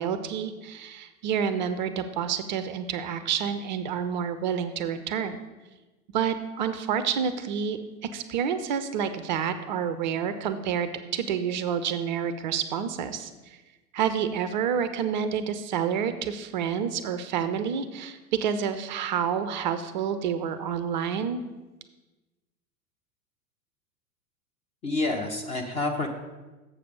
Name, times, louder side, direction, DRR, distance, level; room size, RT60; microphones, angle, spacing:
voice 1, 0.0-5.4 6.1-7.8 8.1-13.6 13.9-21.4, right 7 dB, 35° right, 10 dB, 0.4 m, -29 dB
voice 2, 24.8-26.1, left 2 dB, 15° left, 2 dB, 0.5 m, -28 dB
7.2 x 6.6 x 5.3 m, 1.1 s
figure-of-eight pair, 95°, 45 cm